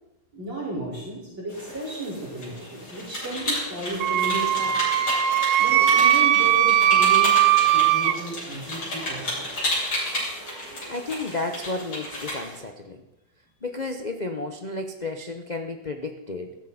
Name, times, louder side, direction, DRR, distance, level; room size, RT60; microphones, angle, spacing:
voice 1, 0.3-5.0 5.6-9.5, right 1 dB, 65° right, -7 dB, 5.6 m, -34 dB
sound 1, 1.5-12.6, left 1 dB, 85° left, 8.5 m, -32 dB
Wind instrument woodwind instrument, 4.0-8.2, right 12 dB, 90° right, 1.5 m, -19 dB
voice 2, 10.7-13.0 13.6-16.5, left 2 dB, 70° left, 5 dB, 0.4 m, -32 dB
16.5 x 15.5 x 4.2 m, 0.97 s
omnidirectional pair, 2.2 m